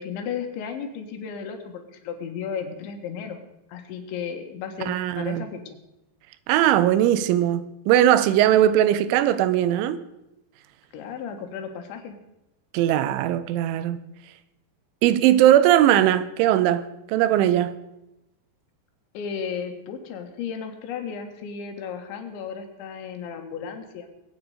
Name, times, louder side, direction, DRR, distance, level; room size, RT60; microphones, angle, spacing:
voice 1, 0.0-3.4 3.7-5.8 10.9-12.2 19.2-24.1, left 7 dB, 80° left, 3.8 m, -34 dB
voice 2, 4.9-5.5 6.5-10.0 12.7-14.0 15.0-17.8, right 12 dB, 90° right, 3.2 m, -19 dB
22.0 x 9.0 x 4.9 m
omnidirectional pair, 5.3 m